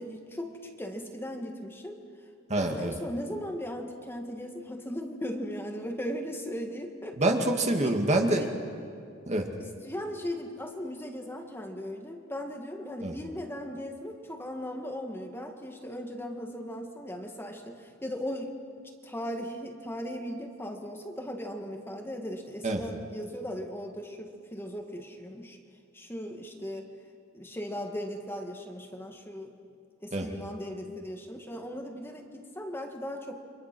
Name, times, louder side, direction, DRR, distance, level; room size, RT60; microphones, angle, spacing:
voice 1, 0.0-2.0 2.7-7.2 7.8-7.9 8.4-8.5 9.6-18.5 19.0-25.6 25.9-26.9 27.3-29.5 30.0-33.4, equal, 10° left, 2 dB, 1.8 m, -38 dB
voice 2, 2.5-3.0 7.2-8.5 9.3-9.5 13.0-13.2 22.6-22.8 30.1-30.3, right 1 dB, 35° right, 3 dB, 2.3 m, -26 dB
30.0 x 25.5 x 6.2 m, 2.4 s
head